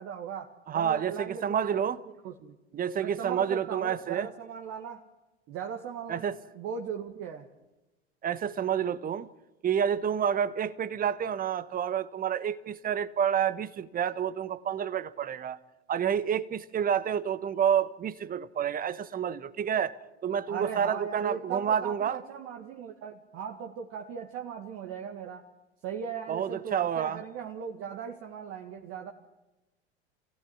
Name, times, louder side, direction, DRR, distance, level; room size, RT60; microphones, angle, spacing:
voice 1, 0.0-1.6 2.2-2.6 3.0-5.0 5.5-6.3 6.5-7.5 20.5-25.5 25.8-29.1, right 7 dB, 40° right, 2.1 m, -38 dB
voice 2, 0.7-2.0 2.7-4.3 6.1-6.4 8.2-9.3 9.6-15.6 15.9-19.9 20.2-22.2 26.3-27.2, right 8 dB, 25° right, 1.2 m, -29 dB
27.0 x 16.5 x 9.6 m
figure-of-eight pair, 80°, 34 cm